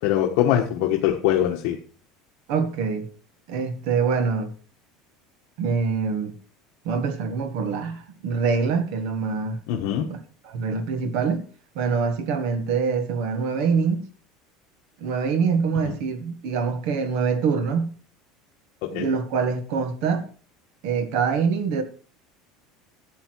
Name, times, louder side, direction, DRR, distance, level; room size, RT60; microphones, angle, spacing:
voice 1, 0.0-1.8 9.7-10.1 15.8-15.9 18.8-19.1, left 11 dB, 55° left, 1.4 m, -22 dB
voice 2, 2.5-3.1 3.5-4.5 5.6-6.4 6.8-9.6 10.1-10.2 10.4-11.4 11.7-14.0 15.0-17.9 18.9-20.3 20.8-21.8, right 5 dB, 60° right, 1.7 m, -24 dB
12.0 x 8.5 x 4.7 m
cardioid pair, 170°, 0 cm